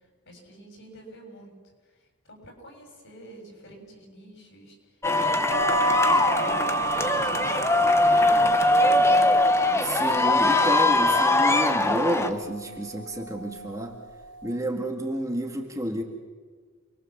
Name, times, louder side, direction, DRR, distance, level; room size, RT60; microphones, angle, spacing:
voice 1, 0.3-1.5 2.2-4.8 5.2-5.6 5.9-7.6 8.1-9.2, right 1 dB, 55° left, 2 dB, 7.3 m, -46 dB
sound 1, 5.0-12.3, left 2 dB, 10° left, 1.0 m, -21 dB
sound 2, 5.5-14.6, right 3 dB, 55° right, 3.6 m, -32 dB
voice 2, 9.8-14.0 14.4-16.0, right 1 dB, 15° right, 1 dB, 2.0 m, -30 dB
29.0 x 22.0 x 7.4 m, 1.5 s
head